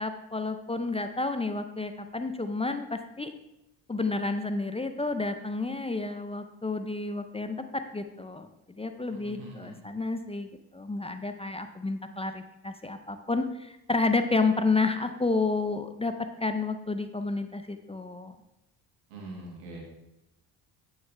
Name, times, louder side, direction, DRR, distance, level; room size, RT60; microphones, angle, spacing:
voice 1, 0.0-3.3 3.9-16.1 16.4-18.3, left 3 dB, 15° left, 8 dB, 0.5 m, -30 dB
voice 2, 9.1-9.8 19.1-19.8, right 2 dB, 90° right, -2 dB, 2.2 m, -43 dB
8.9 x 6.5 x 3.4 m, 0.92 s
supercardioid pair, 65°, 45 cm